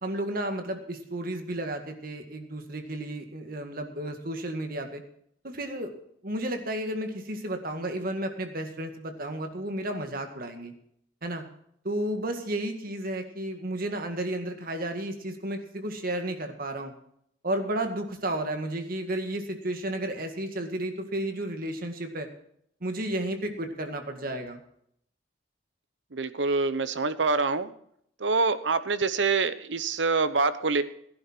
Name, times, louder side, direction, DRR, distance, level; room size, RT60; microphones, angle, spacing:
voice 1, 0.0-5.0 5.4-5.9 6.2-10.7 11.2-11.4 11.8-16.9 17.4-22.3 22.8-24.6, right 1 dB, 55° right, 5 dB, 2.0 m, -32 dB
voice 2, 26.1-27.7 28.2-30.8, right 4 dB, 80° right, 13 dB, 1.0 m, -25 dB
16.0 x 11.0 x 4.5 m, 0.69 s
head